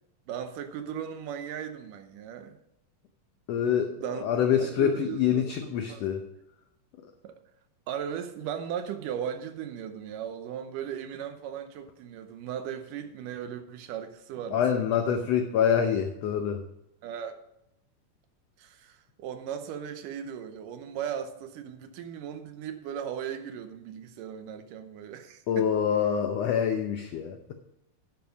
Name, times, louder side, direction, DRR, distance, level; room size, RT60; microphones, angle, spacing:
voice 1, 0.3-2.6 4.0-4.2 4.6-6.1 7.2-7.3 7.9-15.3 17.0-17.4 18.6-25.7, right 8 dB, 85° right, 2.5 m, -37 dB
voice 2, 3.5-6.2 14.5-16.6 25.5-27.5, left 8 dB, 75° left, 1.5 m, -26 dB
11.0 x 7.1 x 5.1 m
omnidirectional pair, 3.8 m